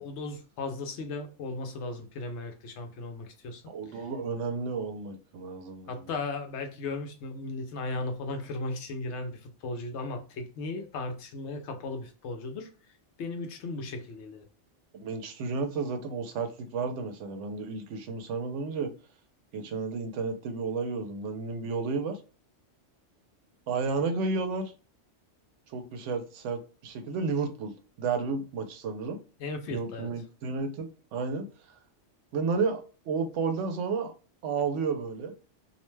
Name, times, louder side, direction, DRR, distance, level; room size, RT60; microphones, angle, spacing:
voice 1, 0.0-3.6 5.9-12.7 13.2-14.5 29.4-30.1, left 3 dB, 75° left, 0.9 m, -36 dB
voice 2, 3.7-6.0 14.9-18.9 19.5-22.2 23.7-24.7 25.7-29.2 29.7-31.5 32.3-34.1 34.4-35.3, right 4 dB, 90° right, 0.9 m, -32 dB
2.6 x 2.1 x 3.1 m
omnidirectional pair, 1.2 m